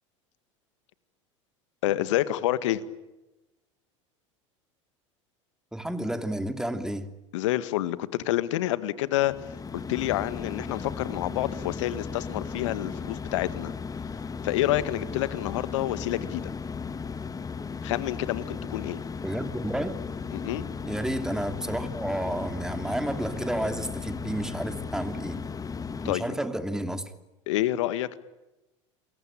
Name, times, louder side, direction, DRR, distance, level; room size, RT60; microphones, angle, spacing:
voice 1, 1.8-2.8 7.3-13.7 14.4-16.5 17.8-19.0 20.3-20.7 26.0-26.4 27.5-28.2, left 14 dB, 70° left, 15 dB, 1.9 m, -28 dB
voice 2, 5.7-7.1 19.2-20.0 20.8-25.4 26.0-27.1, right 1 dB, 5° right, 9 dB, 3.1 m, -31 dB
sound 1, 9.1-26.1, left 5 dB, 20° left, 1.8 m, -36 dB
29.0 x 22.5 x 9.0 m, 1.0 s
hypercardioid pair, 80°, 16 cm